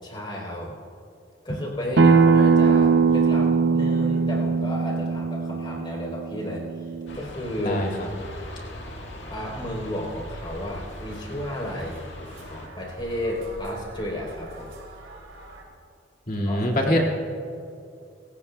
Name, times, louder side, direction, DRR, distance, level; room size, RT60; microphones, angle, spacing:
voice 1, 0.0-0.8 1.4-6.6 7.1-7.8 9.3-12.1 12.4-14.7 16.5-16.9, left 1 dB, 25° left, -3 dB, 3.6 m, -33 dB
Acoustic guitar, 2.0-7.2, right 5 dB, 65° right, 0.6 m, -20 dB
sound 1, 7.1-12.7, left 1 dB, 65° left, 1.9 m, -40 dB
voice 2, 7.6-7.9 16.3-17.1, equal, 45° left, 0 dB, 2.1 m, -23 dB
sound 2, 10.4-15.6, right 1 dB, 85° right, 3.0 m, -44 dB
28.0 x 16.0 x 2.3 m, 2.5 s
head